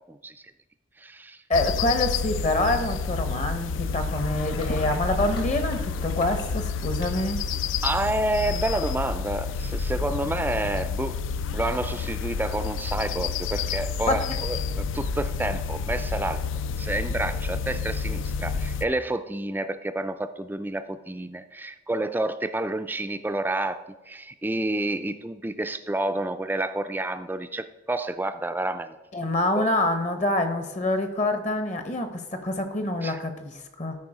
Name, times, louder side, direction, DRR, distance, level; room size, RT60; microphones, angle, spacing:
voice 1, 0.1-0.4 1.0-1.4 7.8-11.2 11.5-16.4 16.8-28.9 29.5-29.7 33.0-33.2, right 2 dB, 10° right, 10 dB, 0.3 m, -29 dB
sound 1, 1.5-18.9, left 5 dB, 75° left, 0.4 m, -29 dB
voice 2, 1.5-7.4 14.1-14.2 29.1-34.0, left 1 dB, 35° left, 8 dB, 0.8 m, -26 dB
sound 2, 2.1-9.5, left 1 dB, 55° left, 1.3 m, -41 dB
13.0 x 4.7 x 4.8 m, 1.1 s
head